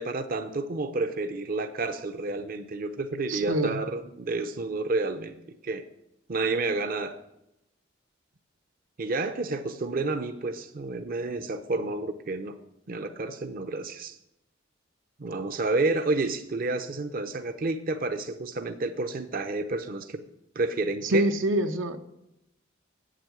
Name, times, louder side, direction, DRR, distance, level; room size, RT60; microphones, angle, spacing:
voice 1, 0.0-5.4 5.6-5.8 6.3-7.2 9.0-12.6 12.9-14.2 15.2-20.2 20.6-21.2, right 3 dB, 50° right, 8 dB, 0.6 m, -30 dB
voice 2, 3.3-3.8 21.0-22.0, right 1 dB, 85° right, 7 dB, 0.9 m, -25 dB
8.3 x 7.6 x 7.8 m, 0.86 s
head